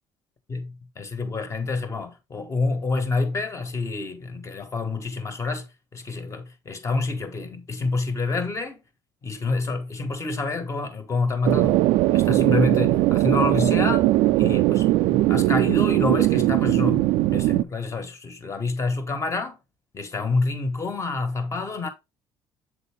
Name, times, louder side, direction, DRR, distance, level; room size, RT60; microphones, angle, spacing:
voice 1, 1.0-5.7 5.9-8.8 9.2-11.8 12.1-14.1 14.4-19.6 19.9-21.9, left 3 dB, 30° left, 1.5 m, -27 dB
sound 1, 11.4-17.6, right 17 dB, 75° right, 0.4 m, -20 dB
7.5 x 3.8 x 3.4 m
supercardioid pair, 85°, 10 cm